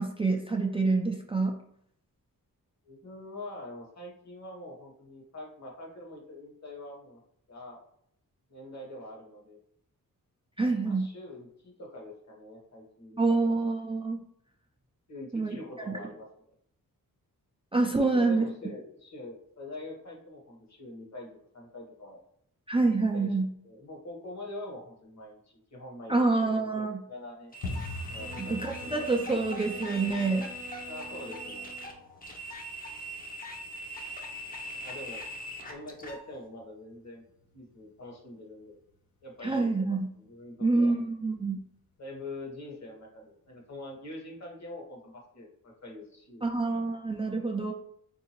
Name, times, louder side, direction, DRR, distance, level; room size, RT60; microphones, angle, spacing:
voice 1, 0.0-1.5 10.6-11.1 13.2-14.2 15.3-15.6 15.9-16.0 17.7-18.4 22.7-23.5 26.1-27.0 28.4-30.5 39.4-40.1 40.6-41.6 46.4-47.7, right 3 dB, 15° right, 2 dB, 0.3 m, -27 dB
voice 2, 2.8-7.2 7.5-7.8 8.5-9.6 10.8-13.3 15.1-16.5 18.0-21.3 21.5-22.2 23.1-23.4 23.6-27.5 28.1-29.0 30.8-31.7 34.8-35.2 35.7-37.2 37.5-38.8 39.2-40.9 42.0-46.5, left 1 dB, 50° left, 0 dB, 1.1 m, -44 dB
sound 1, 27.5-36.2, equal, 25° left, 0.6 m, -41 dB
sound 2, 27.6-38.3 38.6-39.3 39.6-39.9 40.1-40.5 40.8-40.9 41.4-41.9 42.3-42.4 42.9-43.0, left 2 dB, 85° left, 0.6 m, -46 dB
sound 3, 28.2-32.1, right 3 dB, 65° right, 0.6 m, -47 dB
3.7 x 2.6 x 2.9 m, 0.68 s
wide cardioid pair, 95°, 35 cm